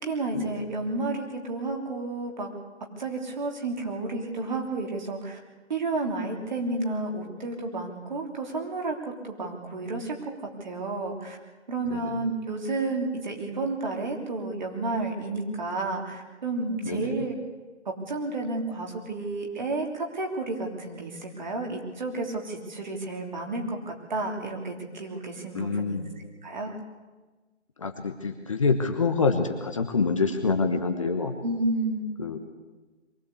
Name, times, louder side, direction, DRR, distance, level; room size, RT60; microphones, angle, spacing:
voice 1, 0.0-2.5 3.0-5.4 5.7-10.2 10.6-11.4 11.7-17.3 17.8-26.0 26.4-26.7 31.4-32.1, right 2 dB, 40° right, 1 dB, 3.4 m, -31 dB
voice 2, 11.8-12.2 16.8-17.1 25.5-26.1 27.8-31.3 32.2-32.4, left 4 dB, 25° left, 5 dB, 1.2 m, -26 dB
23.0 x 16.5 x 8.3 m, 1.3 s
figure-of-eight pair, 155°, 36 cm